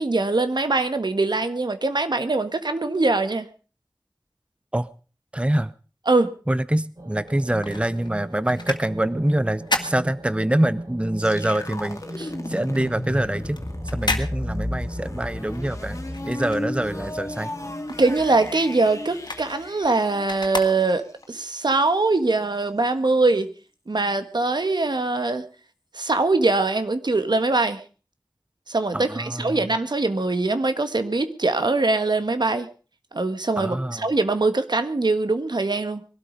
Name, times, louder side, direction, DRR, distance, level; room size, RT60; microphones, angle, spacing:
voice 1, 0.0-3.5 6.1-6.3 12.2-12.3 18.0-23.5 23.9-25.4 25.9-27.8 28.7-32.7 33.1-36.0, right 3 dB, 75° right, 10 dB, 1.5 m, -22 dB
voice 2, 5.3-5.7 6.5-13.6 13.8-16.0 16.3-17.5 28.9-29.6 33.6-34.0, right 1 dB, 15° right, 16 dB, 0.7 m, -25 dB
sound 1, 7.0-19.5, right 1 dB, 55° right, 4.8 m, -39 dB
sound 2, 7.2-10.9 11.2-17.2 17.5-21.3 21.8-21.9, left 2 dB, 80° left, 2.0 m, -34 dB
sound 3, 11.2-21.0, left 1 dB, 40° left, 2.0 m, -34 dB
21.0 x 12.5 x 5.2 m, 0.39 s
wide cardioid pair, 40°, 8 cm